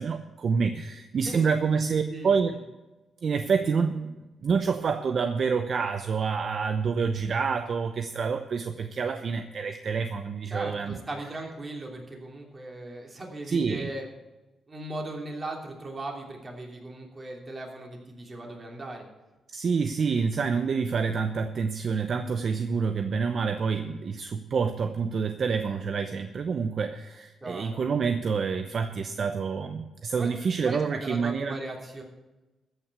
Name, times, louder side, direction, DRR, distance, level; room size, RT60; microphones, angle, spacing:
voice 1, 0.0-2.5 3.2-11.0 13.5-13.9 19.5-31.6, right 5 dB, 55° right, 8 dB, 0.7 m, -27 dB
voice 2, 10.5-14.1 14.7-19.1 27.4-27.8 30.2-30.3 30.6-32.0, right 2 dB, 30° right, 0 dB, 3.1 m, -38 dB
14.0 x 6.0 x 8.2 m, 1.1 s
cardioid pair, 105°, 0 cm